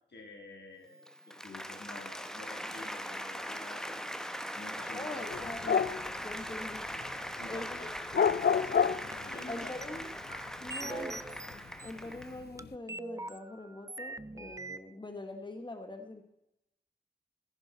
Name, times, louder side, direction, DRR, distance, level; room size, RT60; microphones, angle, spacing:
voice 1, 0.1-4.2 4.5-5.3 7.4-7.9 8.6-9.0 9.3-9.7 10.8-11.1, left 2 dB, 80° left, 1 dB, 2.8 m, -49 dB
Applause, 0.9-12.5, equal, 5° left, 0.9 m, -41 dB
voice 2, 4.9-6.0 6.2-6.9 7.5-7.9 9.5-10.1 10.6-11.2 11.5-16.2, left 2 dB, 25° left, 6 dB, 1.3 m, -43 dB
sound 1, 5.3-7.1 7.5-9.5 9.8-11.5 11.9-12.7, left 7 dB, 65° left, 0.4 m, -29 dB
sound 2, 6.1-6.2 9.1-9.9 10.3-11.9 12.6-14.8, right 2 dB, 20° right, 0.4 m, -42 dB
14.5 x 10.5 x 4.0 m, 0.85 s
wide cardioid pair, 75°, 18 cm